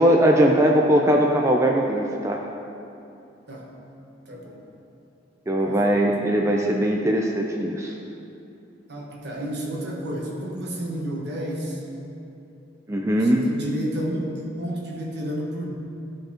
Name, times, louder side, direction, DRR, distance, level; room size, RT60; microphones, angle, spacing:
voice 1, 0.0-2.4 5.5-7.9 12.9-13.4, right 1 dB, 15° right, 0 dB, 0.4 m, -20 dB
voice 2, 4.3-4.6 5.6-6.0 8.9-11.9 13.2-15.7, equal, 60° right, -2 dB, 1.4 m, -31 dB
14.5 x 5.2 x 2.9 m, 2.7 s
head